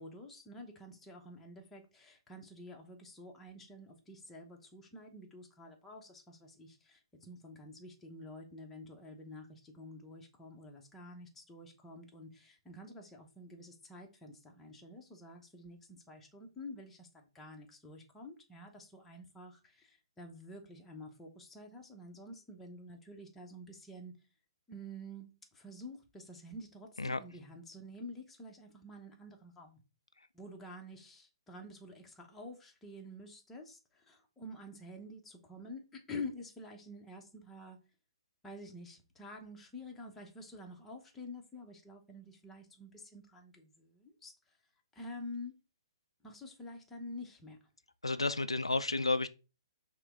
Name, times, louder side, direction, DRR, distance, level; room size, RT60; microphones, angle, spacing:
voice 1, 0.0-24.1 24.7-29.8 30.3-37.8 38.4-44.6 44.9-45.6 46.2-47.6, left 1 dB, 10° left, 0.9 m, -49 dB
voice 2, 48.0-49.3, left 3 dB, 85° left, 0.4 m, -31 dB
5.7 x 2.2 x 3.6 m
figure-of-eight pair, 125°, 3 cm